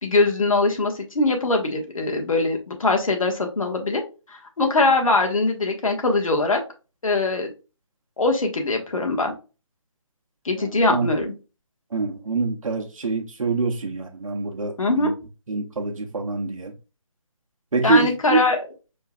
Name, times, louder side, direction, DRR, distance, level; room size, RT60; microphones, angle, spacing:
voice 1, 0.0-4.0 4.3-6.6 7.0-7.5 8.2-9.3 10.4-11.3 14.8-15.1 17.8-18.6, left 2 dB, 80° left, 1.6 m, -22 dB
voice 2, 10.5-11.1 11.9-15.1 15.5-16.7 17.7-18.4, right 3 dB, 80° right, 0.9 m, -25 dB
5.4 x 3.3 x 2.4 m
hypercardioid pair, 165°, 17 cm